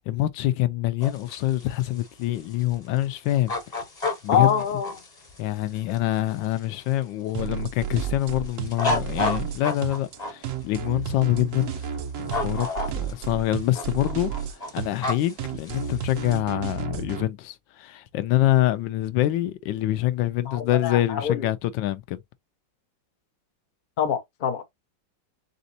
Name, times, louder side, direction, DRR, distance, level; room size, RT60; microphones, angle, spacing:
voice 1, 0.0-3.5 4.2-4.6 5.4-12.7 12.9-14.3 14.7-22.2, left 14 dB, 75° left, 1.2 m, -25 dB
sound 1, 1.0-7.0 7.5-10.3 11.4-11.9 12.2-13.3 13.6-16.4, left 2 dB, 30° left, 0.8 m, -31 dB
voice 2, 4.3-4.9 20.5-21.5 24.0-24.7, left 7 dB, 60° left, 0.4 m, -25 dB
sound 2, 7.3-17.2, right 8 dB, 70° right, 0.7 m, -32 dB
4.1 x 3.9 x 2.6 m
omnidirectional pair, 2.1 m